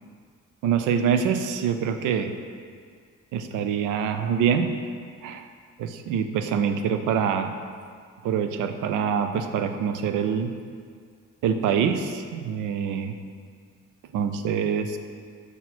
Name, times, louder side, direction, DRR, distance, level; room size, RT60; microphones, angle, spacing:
voice 1, 0.6-2.3 3.3-4.7 5.2-5.5 5.8-7.5 8.2-10.5 11.4-13.2 14.1-15.0, right 7 dB, 90° right, 8 dB, 0.5 m, -25 dB
6.9 x 4.2 x 4.3 m, 2.1 s
cardioid pair, 90°, 30 cm